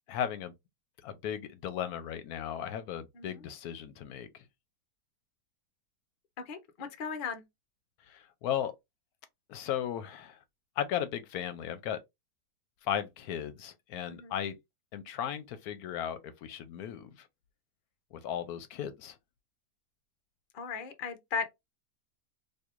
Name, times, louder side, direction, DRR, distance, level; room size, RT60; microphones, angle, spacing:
voice 1, 0.1-0.5 1.0-4.4 8.1-8.7 9.5-10.4 10.8-12.0 12.8-14.6 14.9-17.3 18.1-19.1, left 9 dB, 75° left, 1.0 m, -36 dB
voice 2, 6.5-7.4 14.0-14.3 20.5-21.5, left 5 dB, 50° left, 0.6 m, -37 dB
4.5 x 2.7 x 2.4 m
omnidirectional pair, 1.7 m